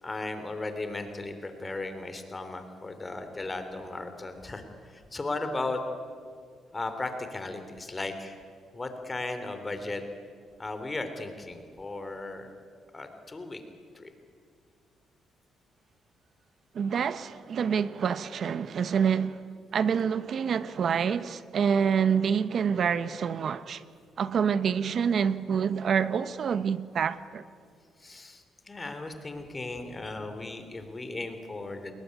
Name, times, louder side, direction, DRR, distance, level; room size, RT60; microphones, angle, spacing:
voice 1, 0.0-5.8 6.7-8.4 8.7-10.0 10.6-12.5 12.9-13.6 13.9-14.1 28.0-31.9, left 2 dB, 25° left, 3.4 m, -36 dB
voice 2, 16.7-19.4 19.7-23.8 24.2-27.4, right 7 dB, 55° right, 1.0 m, -27 dB
30.0 x 21.0 x 9.6 m
cardioid pair, 90°, 0 cm